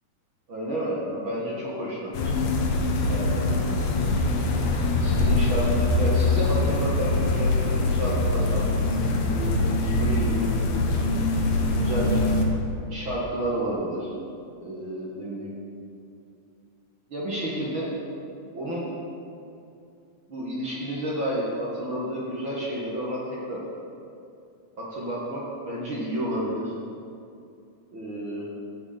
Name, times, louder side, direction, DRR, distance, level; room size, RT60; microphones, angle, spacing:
voice 1, 0.5-2.3 3.0-3.4 5.0-8.6 9.3-10.5 11.8-12.1 12.9-14.1 14.6-15.5 17.1-17.9 18.5-18.9 20.3-23.2 23.5-23.6 24.8-26.7 27.9-28.5, right 1 dB, 45° right, -6 dB, 1.8 m, -30 dB
sound 1, 2.1-12.5, left 2 dB, 70° left, 2.7 m, -23 dB
15.0 x 6.5 x 5.1 m, 2.6 s
omnidirectional pair, 4.2 m